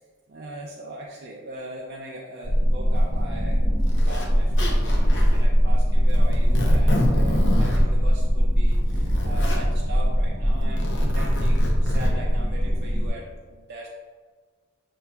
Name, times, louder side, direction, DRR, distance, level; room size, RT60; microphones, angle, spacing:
voice 1, 0.3-3.6 3.9-13.9, right 1 dB, 50° right, -3 dB, 0.4 m, -40 dB
sound 1, 2.4-13.1, equal, 40° left, 1.0 m, -21 dB
Zipper (clothing), 3.0-3.1 3.9-4.3 4.6-5.4 6.1-7.8 8.5-9.6 10.6-12.1, left 1 dB, 60° left, 0.7 m, -28 dB
6.9 x 2.9 x 2.3 m, 1.5 s
head